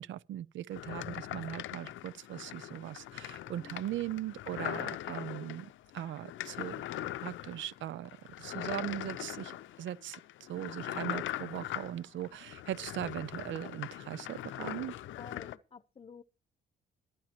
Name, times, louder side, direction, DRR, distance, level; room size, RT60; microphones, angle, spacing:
voice 1, 0.0-6.8 7.2-8.1 8.4-10.2 10.5-14.9, right 12 dB, 75° right, 0.6 m, -39 dB
sound 1, 0.7-15.6, left 13 dB, 75° left, 0.6 m, -41 dB
voice 2, 15.2-16.2, left 5 dB, 30° left, 0.8 m, -50 dB
22.0 x 9.0 x 3.0 m
cardioid pair, 90°, 20 cm